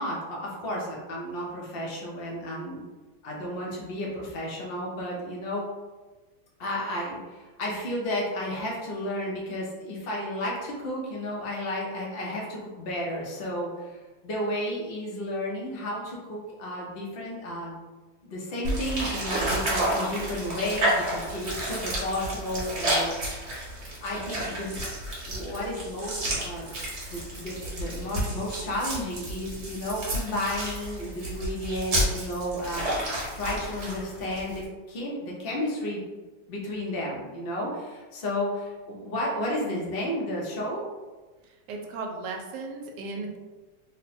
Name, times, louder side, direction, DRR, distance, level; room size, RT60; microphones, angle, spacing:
voice 1, 0.0-2.8 3.2-5.6 6.6-14.0 14.2-17.7 18.2-23.6 24.0-24.8 25.3-26.7 27.1-32.9 33.3-36.0 36.5-40.8, left 1 dB, 50° left, -3 dB, 0.7 m, -32 dB
sound 1, 18.6-34.6, right 1 dB, 45° right, 1.2 m, -31 dB
voice 2, 41.4-43.4, right 3 dB, 75° right, 2 dB, 1.2 m, -36 dB
3.4 x 2.2 x 4.1 m, 1.2 s
omnidirectional pair, 1.9 m